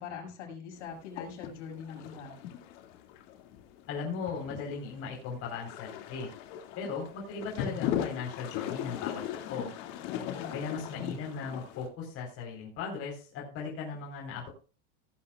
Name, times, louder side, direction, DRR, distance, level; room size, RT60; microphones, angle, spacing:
voice 1, 0.0-2.4 10.1-10.6, left 6 dB, 70° left, 0 dB, 6.4 m, -42 dB
sound 1, 0.8-11.9, left 10 dB, 55° left, 2.3 m, -39 dB
voice 2, 3.9-6.3 6.8-9.7 10.5-14.5, left 5 dB, 40° left, -1 dB, 4.1 m, -38 dB
18.0 x 8.9 x 2.4 m, 0.36 s
supercardioid pair, 135°, 36 cm